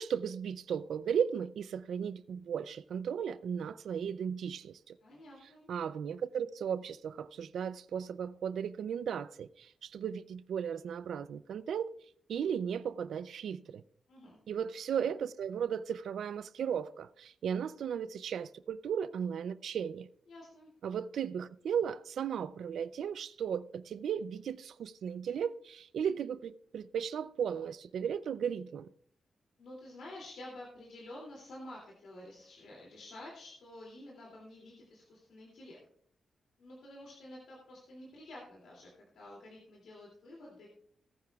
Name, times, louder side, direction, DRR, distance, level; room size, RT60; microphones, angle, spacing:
voice 1, 0.0-5.0 5.7-11.9 12.3-13.8 14.5-20.1 20.8-28.9, right 8 dB, 80° right, 0.3 m, -36 dB
voice 2, 5.0-5.7 14.1-14.4 20.3-20.7 29.6-35.8 36.6-38.9 39.1-40.7, left 1 dB, 80° left, 2.5 m, -50 dB
17.5 x 9.8 x 2.3 m
cardioid pair, 110°, 0 cm